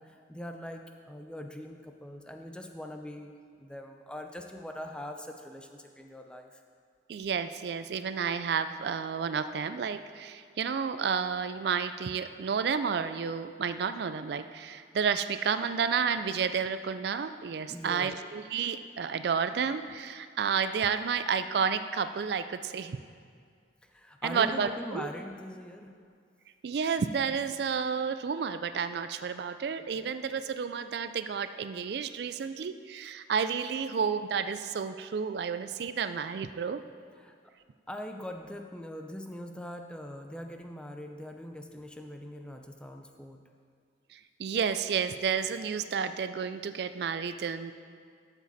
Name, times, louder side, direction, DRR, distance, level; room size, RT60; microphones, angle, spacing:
voice 1, 0.0-3.3 3.6-6.6 17.7-18.1 23.8-25.9 29.8-30.0 37.2-37.3 37.9-43.4, left 1 dB, 5° left, 4 dB, 0.5 m, -42 dB
voice 2, 7.1-23.0 24.2-25.1 26.6-36.8 44.1-47.7, right 6 dB, 60° right, 11 dB, 0.3 m, -31 dB
12.0 x 7.2 x 4.1 m, 2.1 s
head